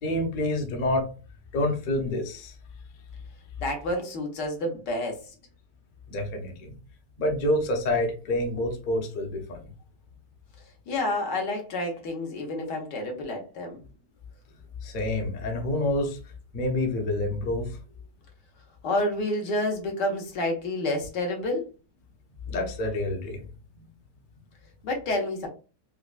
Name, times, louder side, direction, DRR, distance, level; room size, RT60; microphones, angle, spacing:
voice 1, 0.0-1.1 1.5-2.5 6.1-6.8 7.2-9.6 14.8-16.2 16.5-17.8 22.5-23.4, left 1 dB, 45° left, 2 dB, 0.6 m, -27 dB
voice 2, 3.6-5.3 10.9-13.8 18.8-21.6 24.8-25.5, left 1 dB, 80° left, 1 dB, 1.7 m, -29 dB
4.7 x 2.2 x 2.4 m, 0.34 s
omnidirectional pair, 1.8 m